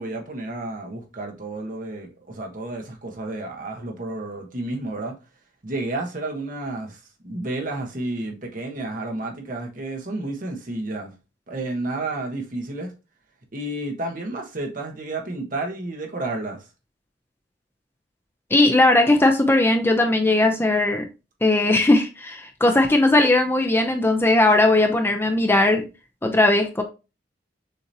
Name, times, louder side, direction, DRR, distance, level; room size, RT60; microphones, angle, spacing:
voice 1, 0.0-5.2 5.6-11.1 11.5-12.9 13.5-16.6, right 2 dB, 50° right, 1.1 m, -31 dB
voice 2, 18.5-21.1 21.4-25.9 26.2-26.8, left 2 dB, 15° left, 0.5 m, -18 dB
6.5 x 2.9 x 2.7 m
head